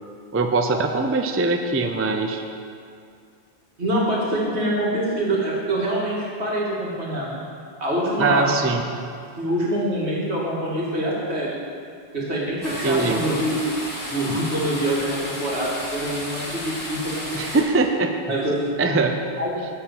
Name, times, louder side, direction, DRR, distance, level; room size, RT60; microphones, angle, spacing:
voice 1, 0.3-2.4 8.2-8.8 12.8-13.2 17.3-18.2 18.8-19.2 19.6-19.7, right 3 dB, 20° right, 5 dB, 0.3 m, -22 dB
voice 2, 3.8-7.4 7.8-8.6 9.4-11.6 12.1-13.6 14.0-17.6 18.3-18.8 19.4-19.5, right 1 dB, 80° right, -5 dB, 2.4 m, -25 dB
sound 1, 12.6-17.6, left 1 dB, 15° left, 1.9 m, -33 dB
11.0 x 4.4 x 7.6 m, 2.3 s
omnidirectional pair, 1.1 m